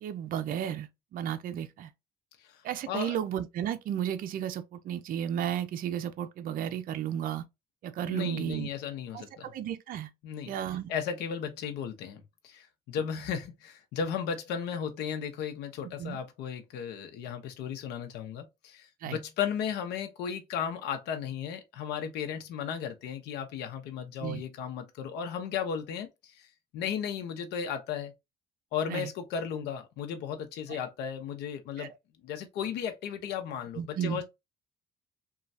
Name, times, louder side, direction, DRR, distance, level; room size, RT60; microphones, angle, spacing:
voice 1, 0.0-1.9 2.6-7.4 7.8-8.7 9.1-10.1 10.5-10.9 16.0-16.2 19.0-19.2 24.2-24.4 28.9-29.1 30.7-30.8 31.8-31.9 33.8-34.2, right 10 dB, 55° right, 0.5 m, -33 dB
voice 2, 8.0-9.5 10.2-10.5 10.9-28.1 28.7-31.9 32.2-34.2, left 7 dB, 80° left, 0.7 m, -35 dB
3.1 x 2.3 x 2.6 m
cardioid pair, 110°, 17 cm